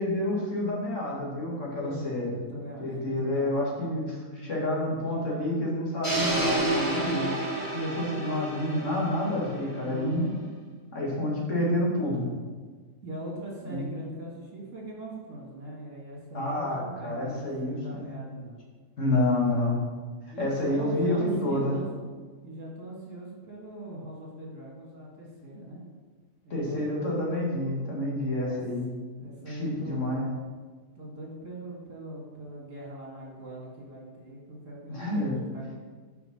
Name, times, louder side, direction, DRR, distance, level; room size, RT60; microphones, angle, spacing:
voice 1, 0.0-2.3 2.8-7.4 7.7-10.2 10.9-12.3 13.6-13.9 16.3-18.1 19.0-19.8 20.2-21.8 26.5-28.8 29.5-30.3 34.9-35.3, left 1 dB, 65° left, -4 dB, 2.3 m, -29 dB
voice 2, 1.8-3.5 4.4-4.7 9.9-10.4 11.4-11.5 13.0-18.6 20.3-22.0 22.4-25.8 26.4-26.9 28.3-28.6 29.2-30.2 31.0-35.7, right 1 dB, 65° right, -4 dB, 2.4 m, -40 dB
sound 1, 6.0-10.1, right 1 dB, 20° left, 2.0 m, -30 dB
5.9 x 5.9 x 5.5 m, 1.4 s
omnidirectional pair, 1.4 m